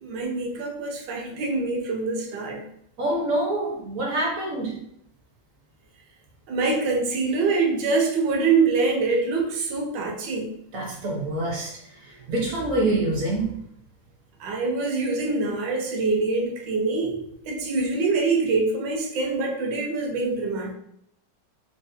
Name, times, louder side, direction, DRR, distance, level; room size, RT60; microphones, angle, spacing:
voice 1, 0.0-2.6 6.5-10.5 14.4-20.7, right 3 dB, 80° right, 0 dB, 1.4 m, -25 dB
voice 2, 3.0-4.8 10.7-11.7 12.3-13.5, right 2 dB, 60° right, -1 dB, 0.9 m, -25 dB
5.0 x 2.0 x 2.6 m, 0.73 s
omnidirectional pair, 2.0 m